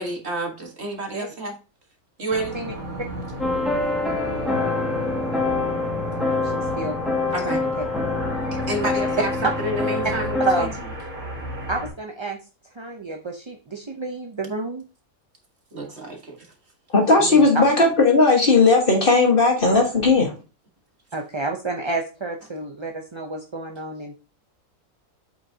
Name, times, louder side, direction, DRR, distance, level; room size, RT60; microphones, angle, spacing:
voice 1, 0.0-1.5 2.2-2.6 7.3-7.6 8.7-9.3 9.6-10.7 15.7-16.3, right 1 dB, 45° right, 1.8 m, -29 dB
sound 1, 2.3-11.9, right 1 dB, 70° right, 3.3 m, -35 dB
sound 2, 3.4-10.7, left 3 dB, ahead, 1.9 m, -25 dB
voice 2, 6.2-7.0 7.4-7.7 8.6-8.7 10.4-10.8 11.7-12.4 12.7-14.8 17.2-17.5 21.1-24.2, right 2 dB, 30° right, 0.5 m, -30 dB
voice 3, 16.9-20.3, left 3 dB, 40° left, 1.6 m, -16 dB
7.7 x 5.5 x 2.8 m
omnidirectional pair, 1.6 m